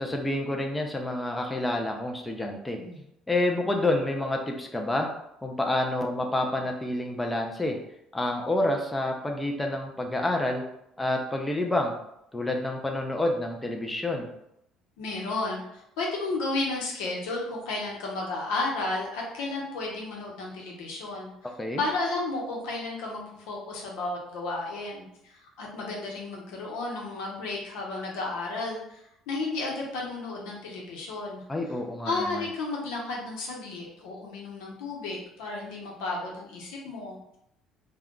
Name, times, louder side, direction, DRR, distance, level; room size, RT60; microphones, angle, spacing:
voice 1, 0.0-2.8 3.3-5.1 5.4-7.8 8.1-10.6 11.0-11.9 12.3-14.3 21.6-21.8 31.5-32.4, left 1 dB, 10° left, 2 dB, 0.4 m, -28 dB
voice 2, 15.0-21.3 21.8-31.4 32.0-37.2, left 2 dB, 90° left, -2 dB, 0.8 m, -33 dB
2.3 x 2.2 x 3.6 m, 0.79 s
cardioid pair, 105°, 0 cm